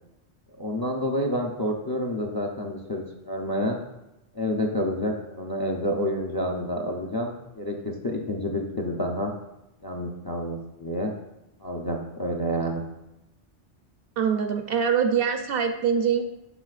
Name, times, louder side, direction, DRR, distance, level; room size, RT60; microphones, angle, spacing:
voice 1, 0.6-3.8 4.3-9.3 9.8-11.1 11.6-12.8, equal, 30° left, 1 dB, 0.5 m, -29 dB
voice 2, 14.2-16.2, right 7 dB, 65° right, 6 dB, 0.7 m, -24 dB
11.0 x 4.2 x 2.4 m, 0.92 s
omnidirectional pair, 1.2 m